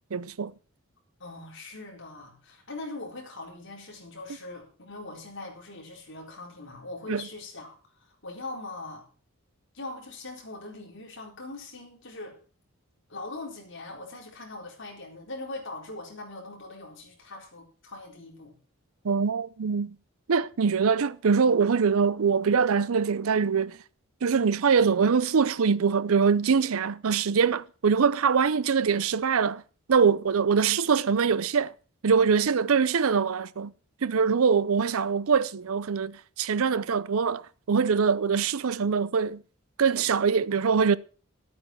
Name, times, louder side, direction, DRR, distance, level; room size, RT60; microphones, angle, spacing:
voice 1, 0.1-0.5 7.1-7.3 19.0-20.0 20.3-23.8 24.2-29.6 29.9-31.7 32.0-33.7 34.0-39.4 39.8-41.0, right 6 dB, 70° right, 0.5 m, -23 dB
voice 2, 1.2-7.8 8.1-9.0 9.7-12.4 13.1-18.5, left 2 dB, 55° left, 4.1 m, -41 dB
12.0 x 8.6 x 5.9 m
head